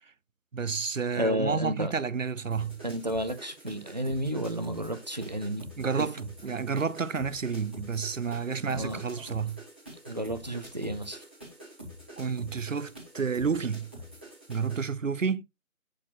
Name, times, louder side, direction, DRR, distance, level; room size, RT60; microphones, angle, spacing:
voice 1, 0.5-2.8 5.8-9.6 12.2-13.9 14.5-15.4, right 5 dB, 60° right, 0.7 m, -30 dB
voice 2, 1.1-1.9 2.8-5.6 6.0-6.1 8.7-9.0 10.1-11.2, right 1 dB, 30° right, 0.8 m, -31 dB
sound 1, 2.5-14.9, equal, 10° right, 1.1 m, -47 dB
8.6 x 6.6 x 2.9 m
figure-of-eight pair, 160°, 43 cm